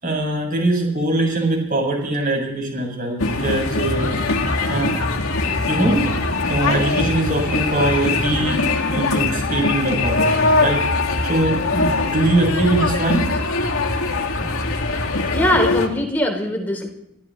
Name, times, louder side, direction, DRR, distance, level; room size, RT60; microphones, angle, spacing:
voice 1, 0.0-4.4 4.7-4.9 5.7-6.1 6.5-10.8 11.2-13.3, right 2 dB, 40° right, 0 dB, 6.8 m, -22 dB
sound 1, 3.2-15.9, left 3 dB, 70° left, 2.1 m, -21 dB
voice 2, 15.3-16.9, left 1 dB, 10° left, 1 dB, 3.4 m, -21 dB
25.5 x 14.5 x 3.2 m, 0.81 s
head